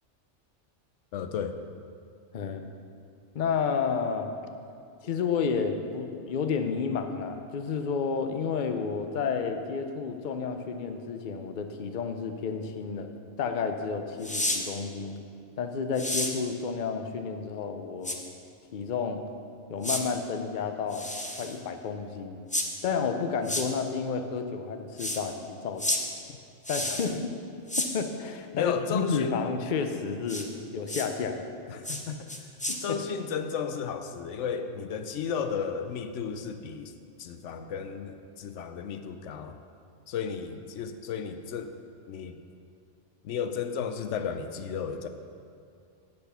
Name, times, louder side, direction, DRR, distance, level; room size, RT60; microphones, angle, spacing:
voice 1, 1.1-1.6 27.1-27.2 28.5-29.4 31.7-32.4 32.8-36.9 37.2-39.6 40.1-41.7 42.1-42.4 43.2-45.1, left 6 dB, 85° left, 8 dB, 0.9 m, -33 dB
voice 2, 2.3-2.6 3.3-4.3 5.0-13.1 13.4-15.2 15.6-18.2 18.7-19.2 19.7-21.1 21.4-22.4 22.8-25.9 26.7-27.2 27.8-31.4 32.7-33.0, left 5 dB, 50° left, 6 dB, 0.7 m, -31 dB
sound 1, 14.2-14.6 16.0-16.3 18.0-18.2 19.8-20.0 20.9-21.6 22.5-22.7 23.4-23.6 25.0-25.2 25.8-26.0 26.6-27.1 27.7-27.9 30.3-30.4 30.9-31.1 31.8-32.0 32.3-32.8, left 1 dB, 10° left, 0.5 m, -30 dB
7.9 x 6.7 x 6.8 m, 2.5 s
omnidirectional pair, 1.2 m